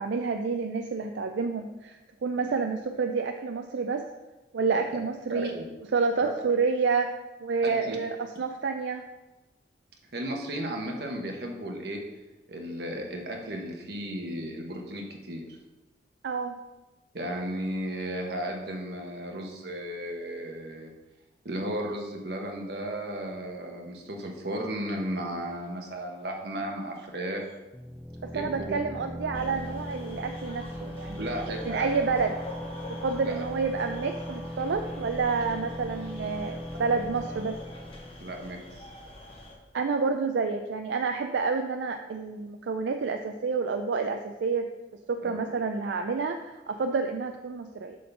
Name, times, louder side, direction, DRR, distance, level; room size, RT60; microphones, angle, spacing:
voice 1, 0.0-4.1 4.5-5.5 5.9-7.1 7.4-9.0 16.2-16.5 28.2-31.3 31.7-32.3 33.0-37.6 39.7-44.7 45.1-48.0, right 4 dB, 85° right, 5 dB, 0.4 m, -29 dB
voice 2, 5.3-5.6 6.2-6.3 7.6-8.0 10.1-12.0 12.5-15.5 17.1-20.9 21.4-27.4 28.3-28.8 31.2-31.9 33.2-33.4 38.2-38.8 45.2-45.5, right 1 dB, 65° right, 1 dB, 1.2 m, -34 dB
sound 1, 27.7-39.2, equal, ahead, 0.4 m, -39 dB
sound 2, 29.3-39.5, left 1 dB, 30° left, 1.1 m, -45 dB
7.4 x 3.8 x 5.8 m, 1.1 s
head